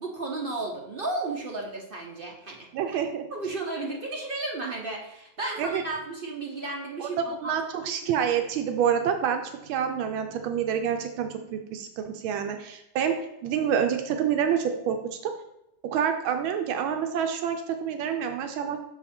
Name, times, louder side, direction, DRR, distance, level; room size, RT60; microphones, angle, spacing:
voice 1, 0.0-3.0 3.3-7.4, right 2 dB, 60° right, -1 dB, 0.5 m, -33 dB
voice 2, 2.7-3.3 5.6-5.8 7.0-15.3 15.8-18.8, right 8 dB, 85° right, 6 dB, 1.4 m, -28 dB
6.5 x 4.8 x 4.3 m, 0.86 s
omnidirectional pair, 2.2 m